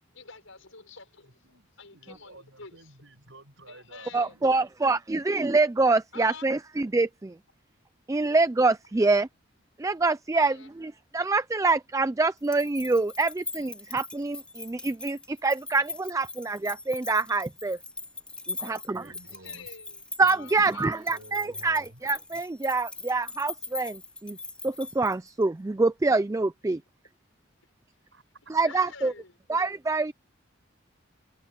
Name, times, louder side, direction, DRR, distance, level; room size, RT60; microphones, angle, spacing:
voice 1, 0.1-1.4 1.8-3.0 3.6-4.4 6.1-6.5 8.2-8.3 10.3-10.7 19.2-20.0 20.3-21.2 28.6-29.3, left 4 dB, 75° left, 6.6 m, -48 dB
voice 2, 1.9-4.6 18.6-19.7 20.2-22.0 28.1-28.2, right 1 dB, 65° right, 7.7 m, -52 dB
voice 3, 4.1-7.4 8.1-9.3 9.8-17.8 18.5-19.0 20.2-24.4 24.6-26.8 28.5-29.1 29.5-30.1, right 3 dB, 15° right, 0.3 m, -26 dB
sound 1, 12.4-25.4, left 3 dB, 5° left, 3.8 m, -41 dB
head